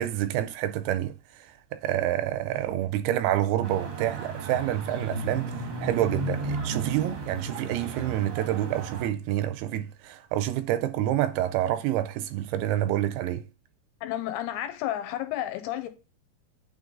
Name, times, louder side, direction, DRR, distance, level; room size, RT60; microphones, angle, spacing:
voice 1, 0.0-13.5, right 12 dB, 80° right, 2.4 m, -28 dB
sound 1, 3.6-9.1, right 3 dB, 65° right, 1.3 m, -34 dB
voice 2, 14.0-15.9, left 12 dB, 90° left, 2.8 m, -31 dB
8.9 x 3.4 x 3.7 m
omnidirectional pair, 4.6 m